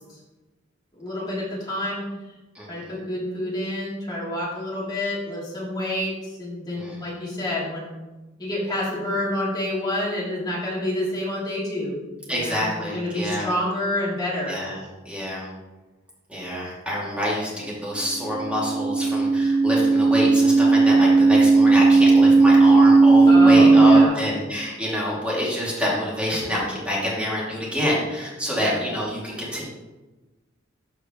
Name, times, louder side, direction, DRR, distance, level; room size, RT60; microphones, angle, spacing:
voice 1, 0.9-2.0 2.7-8.0 8.4-12.0 12.3-14.6 23.3-24.2 28.5-28.7, left 1 dB, 20° left, -7 dB, 2.7 m, -28 dB
voice 2, 2.5-2.9 6.8-7.0 12.3-13.5 14.4-14.8 15.1-15.5 16.3-29.6, equal, 5° right, -5 dB, 2.1 m, -27 dB
sound 1, 18.3-24.1, right 3 dB, 50° right, 0.4 m, -15 dB
12.5 x 5.0 x 2.9 m, 1.2 s
head